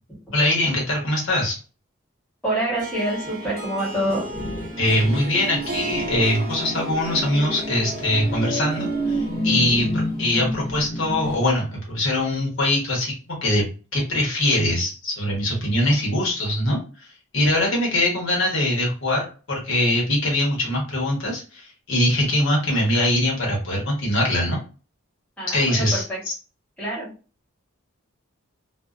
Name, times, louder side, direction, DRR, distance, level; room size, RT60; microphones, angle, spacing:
voice 1, 0.3-1.6 4.8-13.6 13.9-17.1 17.3-24.6 25.5-26.3, left 1 dB, 75° left, -2 dB, 1.1 m, -22 dB
voice 2, 2.4-4.2 25.4-26.2 26.8-27.1, right 1 dB, 5° left, -7 dB, 1.1 m, -26 dB
Harp, 2.8-10.5, right 2 dB, 50° right, 0.5 m, -36 dB
sound 1, 4.0-11.3, equal, 45° left, 0.5 m, -29 dB
2.6 x 2.1 x 2.4 m, 0.35 s
head